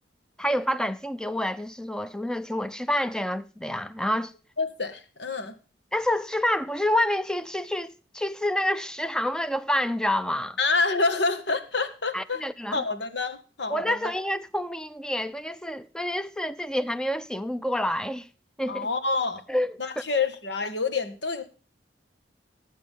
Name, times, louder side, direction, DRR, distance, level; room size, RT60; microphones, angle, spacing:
voice 1, 0.4-4.3 5.9-10.6 12.1-12.8 13.7-18.3 18.6-18.9 19.5-19.7, left 1 dB, 5° left, 0.6 m, -28 dB
voice 2, 4.6-5.5 10.6-12.4 12.7-14.1 18.7-19.4 19.8-21.4, left 4 dB, 75° left, 1.8 m, -27 dB
18.5 x 8.6 x 3.7 m
head